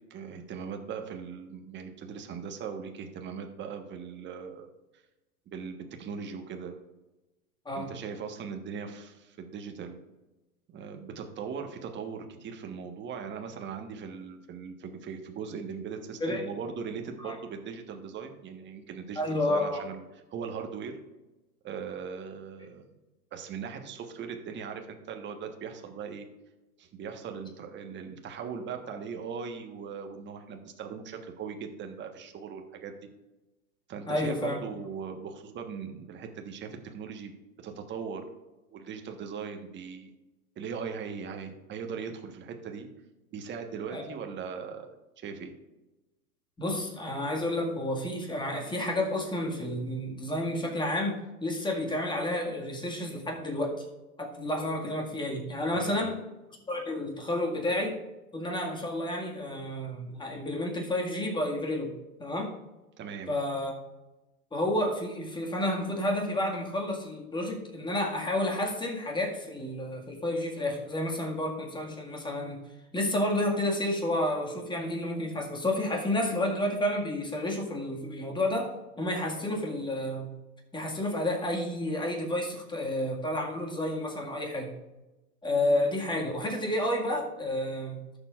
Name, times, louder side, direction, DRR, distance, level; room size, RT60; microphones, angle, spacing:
voice 1, 0.1-4.7 5.5-6.7 7.7-10.0 10.7-20.0 20.3-20.9 21.6-22.9 23.3-26.3 26.8-32.9 33.9-37.3 37.6-38.2 38.7-40.1 40.6-42.9 43.3-45.5 55.7-56.1 63.0-63.3, right 6 dB, 25° right, 4 dB, 1.3 m, -39 dB
voice 2, 19.2-19.8 34.1-34.6 43.9-44.1 46.6-53.9 54.2-56.2 56.7-58.0 58.3-61.9 62.2-62.5 63.3-63.7 64.5-72.6 72.9-80.3 80.7-84.7 85.4-88.0, left 1 dB, 10° left, 0 dB, 1.8 m, -30 dB
15.0 x 7.0 x 2.4 m, 1.0 s
hypercardioid pair, 110°, 45 cm